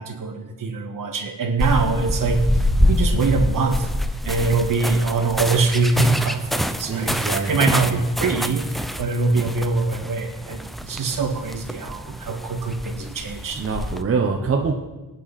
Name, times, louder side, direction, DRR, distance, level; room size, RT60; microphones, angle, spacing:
voice 1, 0.0-3.9 4.2-13.6, right 3 dB, 65° right, 4 dB, 1.9 m, -23 dB
sound 1, 1.6-14.0, left 1 dB, ahead, 0.5 m, -26 dB
voice 2, 6.9-7.5 7.8-8.0 13.5-14.7, right 5 dB, 40° right, 2 dB, 1.1 m, -24 dB
25.5 x 9.3 x 4.3 m, 1.1 s
wide cardioid pair, 170°, 35 cm